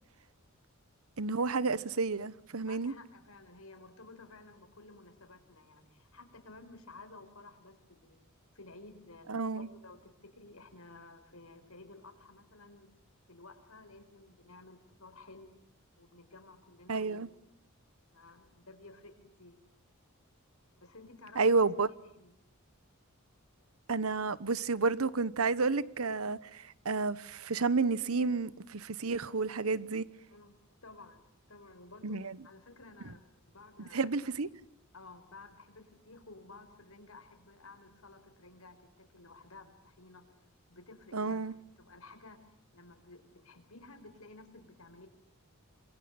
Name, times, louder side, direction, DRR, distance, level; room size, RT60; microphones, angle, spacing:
voice 1, 1.2-2.9 9.3-9.7 16.9-17.3 21.4-21.9 23.9-30.0 32.0-32.4 33.9-34.5 41.1-41.5, right 4 dB, 75° right, 1.0 m, -31 dB
voice 2, 2.7-8.2 8.5-12.9 13.3-15.5 16.0-17.2 18.1-19.6 20.8-21.7 22.1-22.3 30.3-30.6 30.8-34.1 34.9-40.2 40.7-41.4 41.8-45.1, left 3 dB, 75° left, 5.2 m, -54 dB
27.5 x 23.0 x 8.8 m
head